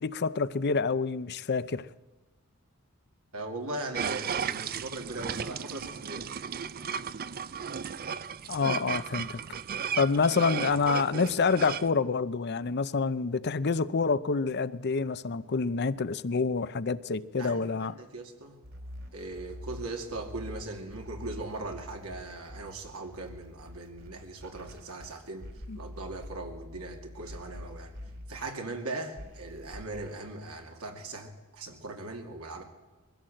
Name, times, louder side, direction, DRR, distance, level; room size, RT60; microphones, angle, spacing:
voice 1, 0.0-1.9 8.5-9.4 10.0-18.0 25.7-25.8, left 4 dB, 50° left, 0.6 m, -27 dB
voice 2, 3.3-6.3 17.4-18.6 19.1-25.5 25.7-27.9 28.3-32.6, right 2 dB, 80° right, 2.4 m, -39 dB
sound 1, 3.9-11.9, right 7 dB, 45° right, 0.5 m, -35 dB
sound 2, 18.6-28.7 29.2-30.1, left 1 dB, 60° right, 3.6 m, -45 dB
21.5 x 15.5 x 7.7 m
head